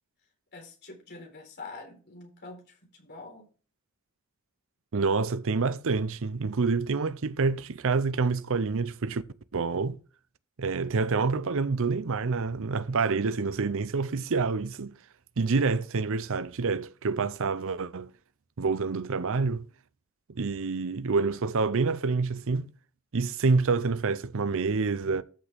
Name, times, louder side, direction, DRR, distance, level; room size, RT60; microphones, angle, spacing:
voice 1, 0.5-3.5 15.5-15.6, left 3 dB, 50° left, 4.2 m, -45 dB
voice 2, 4.9-9.2 9.5-10.0 10.6-14.9 15.4-18.1 18.6-19.6 20.4-22.7 23.1-25.2, right 4 dB, 65° right, 0.6 m, -27 dB
13.5 x 6.1 x 3.5 m
head